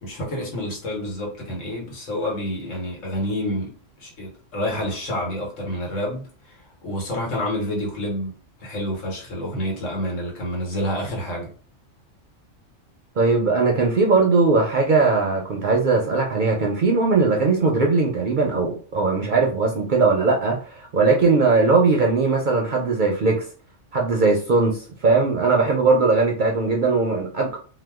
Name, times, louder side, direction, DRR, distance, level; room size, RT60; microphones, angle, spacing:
voice 1, 0.0-3.7 4.0-11.5, equal, 85° left, 1.5 m, -28 dB
voice 2, 13.2-23.4 23.9-27.6, right 3 dB, 60° right, 0.5 m, -19 dB
2.8 x 2.1 x 3.4 m
omnidirectional pair, 1.3 m